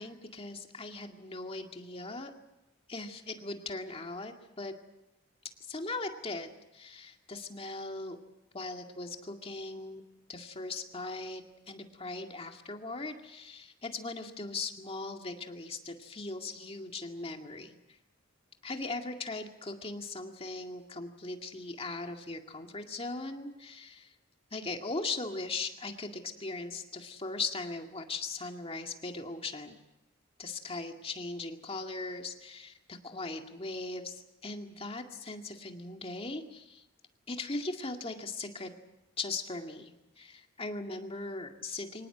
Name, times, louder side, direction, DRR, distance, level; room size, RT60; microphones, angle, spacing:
voice 1, 0.0-2.3 2.9-4.7 5.7-8.2 8.5-10.0 10.3-17.8 18.6-24.1 24.5-29.8 30.4-36.8 37.3-38.7 39.2-42.1, left 3 dB, 30° left, 4 dB, 2.1 m, -39 dB
25.0 x 18.5 x 8.0 m, 0.97 s
head